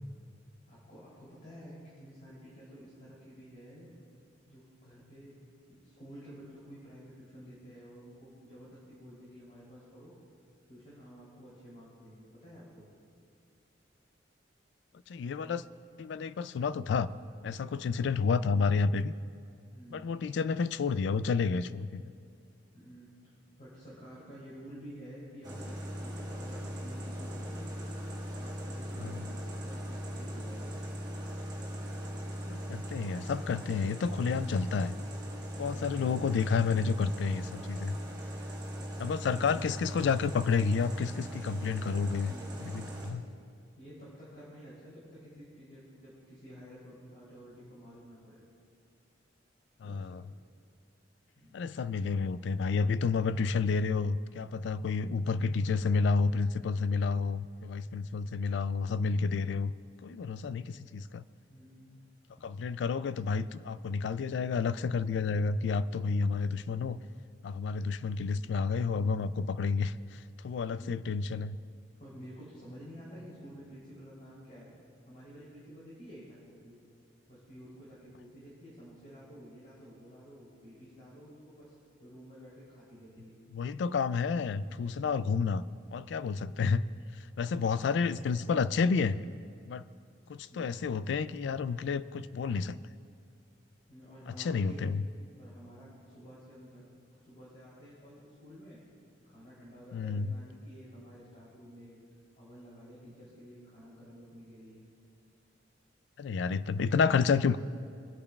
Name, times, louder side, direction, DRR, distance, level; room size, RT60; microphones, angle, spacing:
voice 1, 0.6-3.9 4.5-5.3 5.7-10.1 10.7-12.9 19.7-20.1 22.7-30.7 42.2-42.6 43.8-48.4 49.8-50.2 51.3-51.7 61.5-62.0 62.3-62.4 70.7-71.1 72.0-74.7 75.1-76.8 77.3-83.3 90.5-90.7 93.9-94.9 95.4-96.9 97.1-98.8 99.2-102.0 102.4-104.8, equal, 45° left, -8 dB, 3.3 m, -51 dB
voice 2, 15.1-15.6 16.0-17.1 17.4-19.1 19.9-22.0 29.0-29.2 32.5-34.9 35.6-38.0 39.0-42.3 42.6-43.2 49.8-50.2 51.5-59.7 60.0-61.2 62.4-67.0 67.4-71.6 83.5-85.6 85.9-86.8 87.4-89.2 89.7-89.8 90.3-92.8 94.4-95.0 99.9-100.4 106.2-107.6, left 5 dB, 65° left, 16 dB, 0.3 m, -30 dB
sound 1, 25.4-43.1, equal, 25° right, 1.9 m, -39 dB
25.0 x 8.4 x 2.4 m, 2.4 s
head